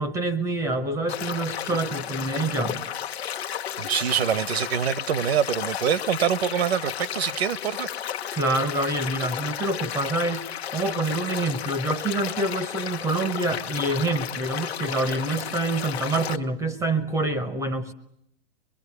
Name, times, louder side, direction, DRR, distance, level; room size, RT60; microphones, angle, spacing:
voice 1, 0.0-2.9 8.3-10.5 10.7-17.9, right 2 dB, 10° right, 0.9 m, -26 dB
sound 1, 1.1-16.4, left 10 dB, 70° left, 1.3 m, -33 dB
voice 2, 3.8-7.9, right 8 dB, 70° right, 1.1 m, -25 dB
23.0 x 23.0 x 9.6 m
hypercardioid pair, 150°, 33 cm